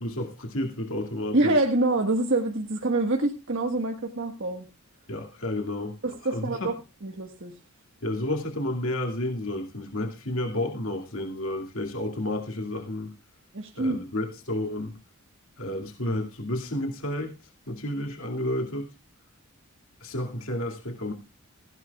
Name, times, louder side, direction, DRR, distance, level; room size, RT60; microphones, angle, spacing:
voice 1, 0.0-1.5 5.1-6.0 6.3-6.7 8.0-13.2 13.8-14.9 15.6-17.3 17.7-18.9 20.0-21.1, left 1 dB, 70° left, 2 dB, 2.4 m, -31 dB
voice 2, 1.3-4.7 6.0-6.8 7.0-7.5 13.5-14.0, right 2 dB, 60° right, 2 dB, 1.6 m, -26 dB
17.0 x 16.0 x 2.4 m, 0.29 s
head